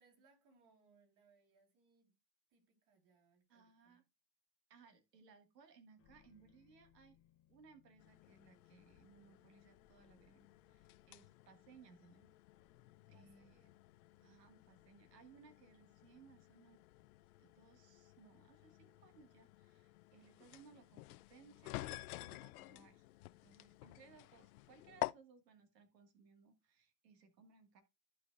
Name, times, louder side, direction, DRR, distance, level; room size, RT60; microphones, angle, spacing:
voice 1, 0.0-2.2 2.5-4.1 13.1-13.8, right 4 dB, 50° right, 3.3 m, -72 dB
voice 2, 3.5-4.0 4.7-7.2 7.5-12.3 13.1-13.7 14.2-16.8 17.4-23.0 23.4-27.8, right 5 dB, 80° right, 1.6 m, -64 dB
sound 1, 6.0-17.4, left 9 dB, 30° left, 0.8 m, -74 dB
sound 2, 8.0-25.1, left 18 dB, 65° left, 0.6 m, -51 dB
14.5 x 4.8 x 2.3 m
hypercardioid pair, 100°, 48 cm